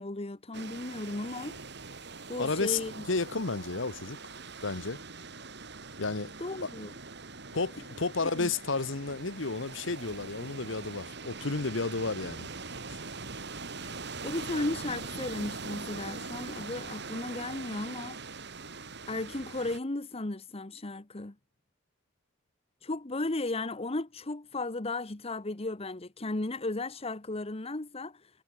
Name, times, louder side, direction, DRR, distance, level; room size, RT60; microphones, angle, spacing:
voice 1, 0.0-1.6 2.3-3.1 6.4-6.9 8.4-8.5 13.8-13.9 14.2-18.2 19.1-21.3 22.8-28.2, left 2 dB, 30° left, 1.1 m, -35 dB
sound 1, 0.5-19.8, right 4 dB, 60° right, 5.7 m, -42 dB
voice 2, 2.4-2.8 3.1-4.2 4.6-5.0 6.0-6.3 6.6-6.7 7.5-12.5, left 3 dB, 75° left, 1.3 m, -32 dB
head